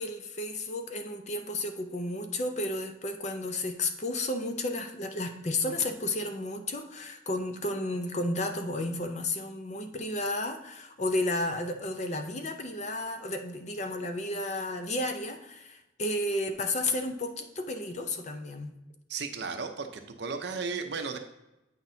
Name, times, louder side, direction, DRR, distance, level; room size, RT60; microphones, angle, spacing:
voice 1, 0.0-18.7, left 2 dB, 35° left, 6 dB, 0.6 m, -32 dB
voice 2, 19.1-21.2, right 5 dB, 60° right, 6 dB, 0.7 m, -34 dB
8.6 x 6.0 x 2.7 m, 0.92 s
head